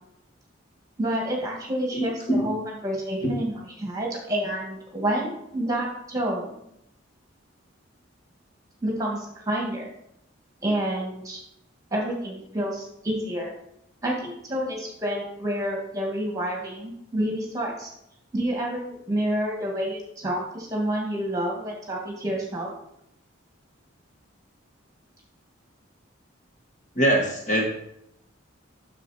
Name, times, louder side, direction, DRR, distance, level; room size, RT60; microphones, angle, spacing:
voice 1, 1.0-6.6 8.8-9.9 10.6-11.4 11.9-13.5 14.0-17.9 18.3-22.7, right 1 dB, 15° right, -1 dB, 1.7 m, -29 dB
voice 2, 1.9-2.5 3.2-3.3 27.0-27.7, right 1 dB, 35° left, 1 dB, 1.1 m, -23 dB
7.4 x 6.4 x 4.1 m, 0.78 s
head